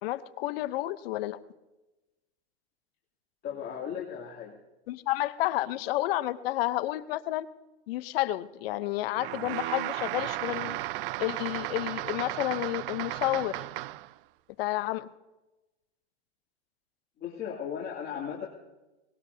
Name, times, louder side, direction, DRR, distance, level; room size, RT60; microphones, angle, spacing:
voice 1, 0.0-1.4 4.9-7.5 7.9-10.8 11.2-13.6 14.6-15.1, left 16 dB, 60° left, 14 dB, 0.9 m, -30 dB
voice 2, 3.4-4.6 17.2-18.5, left 8 dB, 30° left, -5 dB, 2.8 m, -36 dB
sound 1, 9.2-14.1, right 18 dB, 55° right, 0.5 m, -35 dB
20.0 x 20.0 x 2.8 m, 1.0 s
hypercardioid pair, 120°, 33 cm